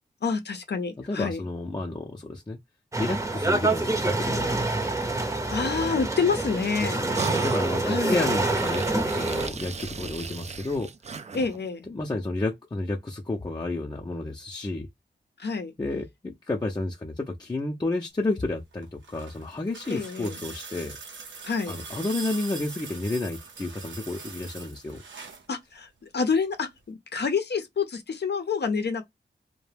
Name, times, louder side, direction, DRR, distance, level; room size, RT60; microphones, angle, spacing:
voice 1, 0.2-1.4 5.2-7.0 7.8-8.3 11.3-11.9 15.4-15.7 19.9-20.4 21.4-21.7 25.5-25.9 26.1-29.0, left 5 dB, 65° left, 0.6 m, -28 dB
voice 2, 1.1-2.6 3.0-4.7 6.8-10.9 11.9-14.9 15.8-21.0 21.7-25.0, left 2 dB, 20° left, 0.6 m, -31 dB
sound 1, 2.9-9.5, right 2 dB, 15° right, 0.7 m, -26 dB
sound 2, 7.1-11.7, right 5 dB, 35° right, 0.4 m, -37 dB
sound 3, 18.7-25.5 26.8-26.9, right 4 dB, 90° right, 0.6 m, -42 dB
2.2 x 2.1 x 3.3 m
cardioid pair, 40°, 19 cm